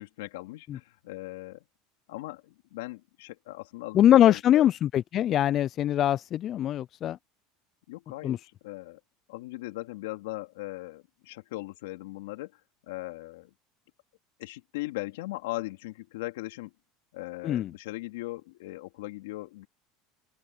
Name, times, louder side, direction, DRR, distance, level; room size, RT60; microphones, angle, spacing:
voice 1, 0.0-1.6 2.1-4.7 7.9-9.0 9.3-12.6 12.9-13.5 14.4-16.7 17.1-19.7, left 19 dB, 85° left, 3.2 m, -39 dB
voice 2, 3.9-7.2 8.2-8.4 17.4-17.7, left 11 dB, 40° left, 0.3 m, -22 dB
open air
supercardioid pair, 115°, 0 cm